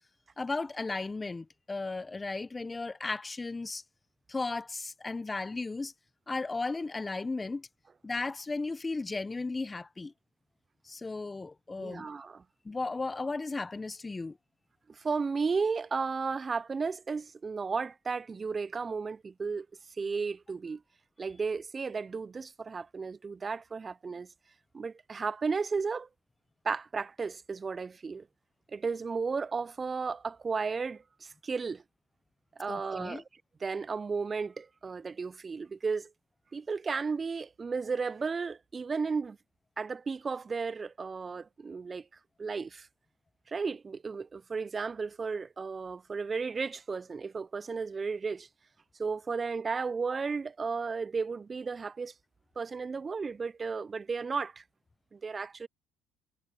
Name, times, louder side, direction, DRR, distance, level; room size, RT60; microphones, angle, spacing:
voice 1, 0.4-3.8 4.3-5.9 6.3-7.7 8.0-10.1 10.9-12.1 12.6-14.4 32.7-33.2, left 3 dB, 20° left, 0.8 m, -35 dB
voice 2, 11.8-12.4 15.0-19.7 20.0-20.8 21.2-24.3 24.7-26.1 26.6-28.3 28.7-31.8 32.6-33.2 33.6-36.1 36.5-39.4 39.8-42.0 42.4-42.9 43.5-48.5 49.0-52.1 52.6-54.6 55.1-55.7, right 5 dB, 30° right, 0.4 m, -34 dB
hypercardioid pair, 60°, 0 cm